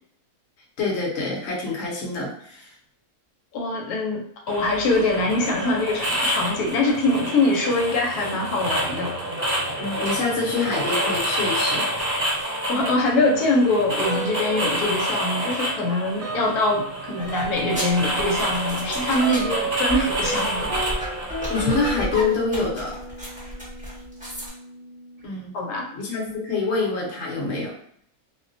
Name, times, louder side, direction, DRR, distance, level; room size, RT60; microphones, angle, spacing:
voice 1, 0.8-2.7 9.8-11.9 21.5-22.9 25.2-25.5 25.9-27.7, left 3 dB, 55° left, -3 dB, 1.0 m, -26 dB
voice 2, 3.5-9.1 12.5-20.9 25.5-25.9, left 2 dB, 85° left, 0 dB, 1.1 m, -23 dB
sound 1, 4.5-22.0, equal, 25° right, 1.3 m, -28 dB
sound 2, 14.0-14.8 15.1-25.4, right 4 dB, 55° right, 0.9 m, -34 dB
sound 3, 17.2-24.5, equal, 5° right, 0.7 m, -33 dB
2.6 x 2.2 x 2.5 m, 0.66 s
omnidirectional pair, 1.6 m